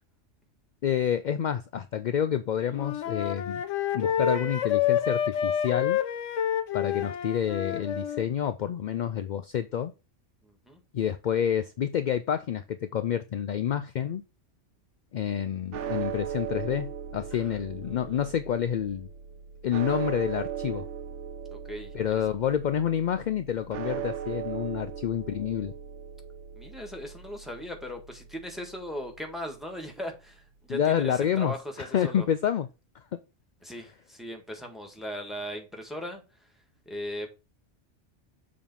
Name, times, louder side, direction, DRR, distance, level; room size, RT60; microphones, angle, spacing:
voice 1, 0.8-3.6 3.9-6.0 6.7-9.9 10.9-14.2 15.1-19.1 19.6-20.8 21.9-25.7 30.7-32.7 33.1-33.2, left 9 dB, 60° left, 0.5 m, -28 dB
Wind instrument woodwind instrument, 2.7-8.3, left 9 dB, 90° left, 1.2 m, -28 dB
voice 2, 10.4-10.8 17.3-17.5 17.8-18.3 21.5-22.2 26.5-32.2 33.6-36.2 36.8-37.3, equal, ahead, 1.5 m, -38 dB
sound 1, 15.7-30.0, right 9 dB, 75° right, 1.0 m, -38 dB
6.9 x 3.7 x 5.3 m
omnidirectional pair, 1.2 m